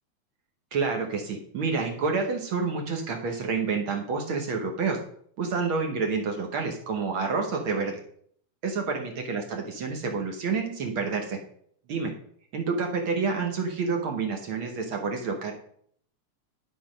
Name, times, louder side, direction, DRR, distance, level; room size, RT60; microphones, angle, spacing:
voice 1, 0.7-5.0 5.4-8.0 8.6-11.4 11.9-12.1 12.5-15.5, right 4 dB, 65° right, 2 dB, 1.3 m, -28 dB
11.0 x 4.1 x 5.1 m, 0.64 s
omnidirectional pair, 3.5 m